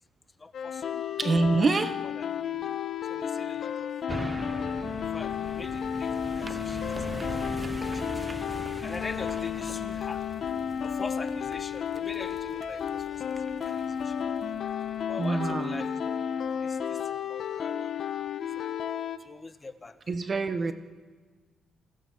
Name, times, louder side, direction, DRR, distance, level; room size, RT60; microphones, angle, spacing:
voice 1, 0.4-0.9 1.6-1.7 2.0-2.3 2.6-2.7 3.0-3.9 4.7-10.3 10.8-14.2 15.1-16.2 16.6-17.9 18.4-18.7 19.2-20.0 20.6-20.7, left 3 dB, 25° left, 9 dB, 1.5 m, -44 dB
sound 1, 0.5-19.2, left 8 dB, 60° left, 1.6 m, -32 dB
voice 2, 1.2-1.9 8.5-8.6 15.2-15.9 20.1-20.7, right 3 dB, 40° right, 9 dB, 1.2 m, -26 dB
sound 2, 4.1-15.5 16.0-16.1, right 2 dB, 20° right, 1.0 m, -41 dB
28.5 x 16.5 x 7.3 m, 1.5 s
cardioid pair, 90°, 0 cm